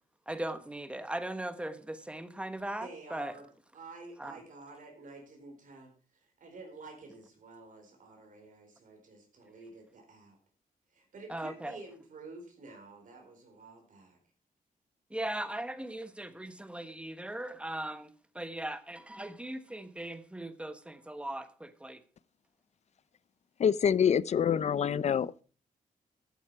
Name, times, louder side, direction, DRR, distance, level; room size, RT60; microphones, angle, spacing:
voice 1, 0.3-3.4 4.2-4.4 11.3-11.8 15.1-22.0, right 1 dB, 5° right, 1.1 m, -39 dB
voice 2, 2.8-3.5 3.7-10.4 10.9-14.2, right 3 dB, 65° right, 4.4 m, -50 dB
voice 3, 23.6-25.4, left 8 dB, 50° left, 0.5 m, -26 dB
14.0 x 9.1 x 4.8 m
wide cardioid pair, 135°, 15 cm